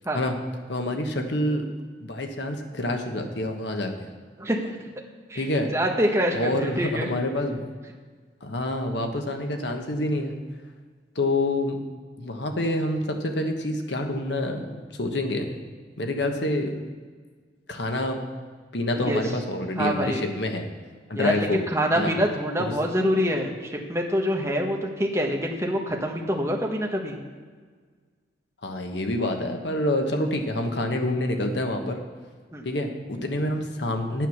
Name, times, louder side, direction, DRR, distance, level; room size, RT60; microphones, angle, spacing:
voice 1, 0.7-1.6 2.0-4.1 5.3-5.7 6.3-7.7 8.4-10.3 11.1-11.8 12.2-15.5 16.0-16.8 17.7-18.2 18.7-20.7 21.1-21.7 21.9-22.1 22.6-22.7 28.6-32.0 32.6-34.3, left 1 dB, 70° left, 4 dB, 1.2 m, -27 dB
voice 2, 4.4-4.8 5.3-5.4 5.7-7.1 19.0-19.2 19.8-20.2 21.2-27.2 32.5-32.6, equal, 15° right, 0 dB, 1.2 m, -25 dB
9.1 x 9.0 x 6.4 m, 1.5 s
head